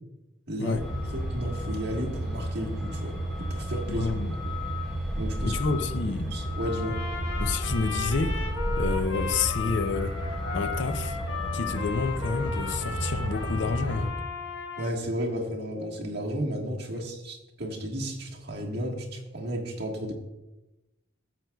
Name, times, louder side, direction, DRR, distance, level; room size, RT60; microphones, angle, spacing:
voice 1, 0.5-0.8 1.1-4.1 5.2-5.5 6.3-7.0 14.8-20.1, equal, 55° right, 1.5 m, -33 dB
Truck, 0.7-14.1, equal, ahead, 3.3 m, -32 dB
voice 2, 3.9-4.3 5.4-6.4 7.4-8.4 8.8-10.2 10.5-11.2 11.5-14.1 16.9-17.1, left 4 dB, 60° left, 0.5 m, -29 dB
Trumpet, 6.6-15.0, left 4 dB, 85° left, 1.3 m, -36 dB
13.5 x 7.7 x 2.3 m
head